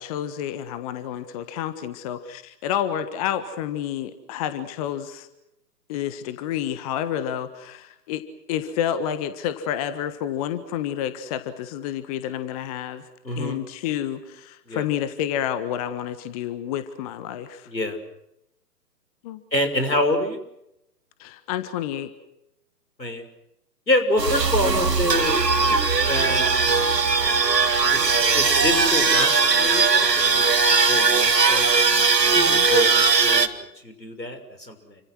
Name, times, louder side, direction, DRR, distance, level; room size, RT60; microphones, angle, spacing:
voice 1, 0.0-5.3 5.9-8.2 8.5-13.0 13.4-17.7 19.2-19.4 21.2-22.1 32.3-32.7, left 10 dB, 20° left, 12 dB, 1.4 m, -29 dB
voice 2, 13.2-13.6 14.7-14.8 17.7-18.0 19.5-20.4 23.0-23.2 23.9-25.4 26.1-26.6 27.9-30.5 30.9-31.7 32.2-35.0, left 1 dB, 85° left, 8 dB, 6.2 m, -27 dB
sound 1, 24.2-33.5, right 4 dB, 75° right, 2.2 m, -19 dB
30.0 x 25.5 x 6.3 m, 0.83 s
figure-of-eight pair, 130°, 50 cm